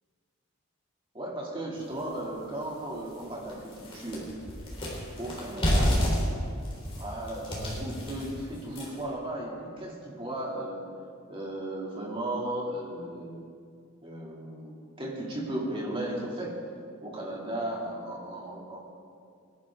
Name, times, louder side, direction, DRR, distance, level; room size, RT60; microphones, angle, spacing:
voice 1, 1.1-4.3 5.2-6.1 7.0-10.8 11.3-13.4 14.0-16.6 17.0-18.8, right 1 dB, 25° right, -3 dB, 2.4 m, -35 dB
sound 1, 2.0-2.1 2.6-2.7 3.1-9.1, equal, 25° left, 3.5 m, -30 dB
21.0 x 11.5 x 3.6 m, 2.2 s
head